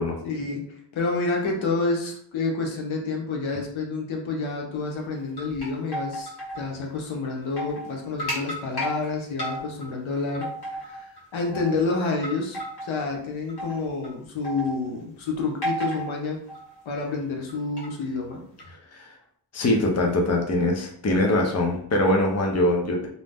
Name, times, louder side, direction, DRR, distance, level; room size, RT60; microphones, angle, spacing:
voice 1, 0.2-16.4 16.9-18.4, left 3 dB, 85° left, 1 dB, 0.7 m, -29 dB
sound 1, 5.1-6.6 7.0-7.1 7.4-7.9 8.2-9.0 9.4-9.9 10.3-11.2 11.5-11.8 12.2-13.0 13.5-14.1 14.4-14.9 15.6-16.2 16.5-16.8 17.5-17.9 18.6-18.7, equal, 55° left, 1.3 m, -32 dB
voice 2, 18.7-19.1 19.5-23.1, left 1 dB, 35° left, 1 dB, 0.6 m, -23 dB
2.6 x 2.0 x 3.4 m, 0.64 s
wide cardioid pair, 95°, 46 cm